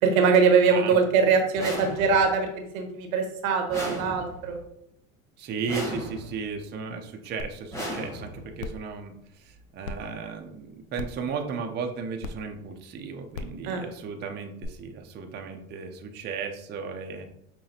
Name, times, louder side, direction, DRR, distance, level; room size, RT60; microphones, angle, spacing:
voice 1, 0.0-4.6 13.6-13.9, right 5 dB, 75° right, 4 dB, 1.0 m, -22 dB
voice 2, 0.7-1.2 5.4-17.3, right 5 dB, 25° right, 3 dB, 0.5 m, -35 dB
sound 1, 1.6-2.4 3.7-4.6 5.7-6.5 7.7-8.6, equal, 5° left, 1.1 m, -35 dB
sound 2, 7.4-7.5 8.0-8.1 8.6-8.8 9.8-9.9 10.9-11.2 12.2-12.3 13.3-13.6 14.6-14.7, left 4 dB, 85° left, 0.5 m, -35 dB
5.7 x 2.2 x 2.8 m, 0.74 s
hypercardioid pair, 95°, 41 cm